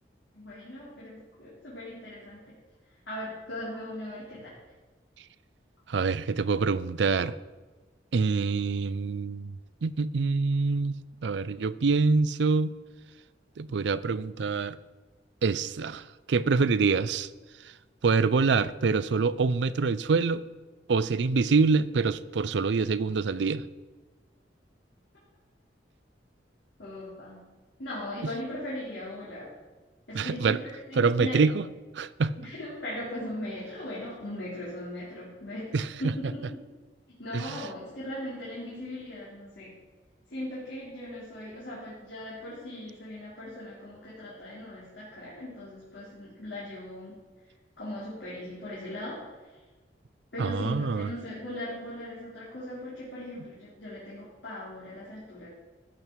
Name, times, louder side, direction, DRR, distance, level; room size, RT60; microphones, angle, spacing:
voice 1, 0.3-2.6 3.1-4.5 26.8-27.4 27.8-29.5 30.1-31.3 32.4-36.4 37.1-39.7 40.3-47.2 47.8-49.2 50.3-55.5, left 1 dB, 75° left, -9 dB, 3.7 m, -39 dB
voice 2, 5.9-7.4 8.1-11.0 11.2-12.7 13.6-14.8 15.4-17.3 17.6-17.7 18.0-20.4 20.9-23.6 30.1-30.6 31.0-31.7 31.9-32.3 35.7-35.9 37.3-37.7 50.4-51.1, right 4 dB, 75° right, 16 dB, 0.5 m, -25 dB
13.5 x 8.4 x 4.6 m, 1.3 s
head